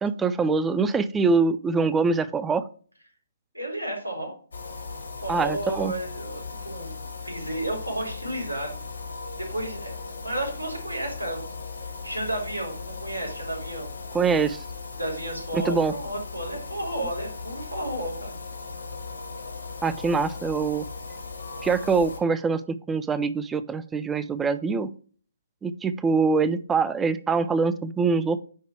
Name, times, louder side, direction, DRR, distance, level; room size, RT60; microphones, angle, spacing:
voice 1, 0.0-2.7 5.3-5.9 14.1-14.6 15.5-15.9 19.8-20.9 21.6-24.9 25.6-28.4, right 4 dB, 10° right, 14 dB, 0.5 m, -24 dB
voice 2, 3.5-4.3 5.2-6.9 7.2-8.8 9.4-9.9 10.2-11.5 12.0-13.9 15.0-18.3, right 1 dB, 85° right, 0 dB, 4.1 m, -32 dB
sound 1, 4.5-22.2, left 4 dB, 65° left, 2.3 m, -38 dB
9.6 x 4.0 x 4.6 m, 0.43 s
figure-of-eight pair, 135°, 0 cm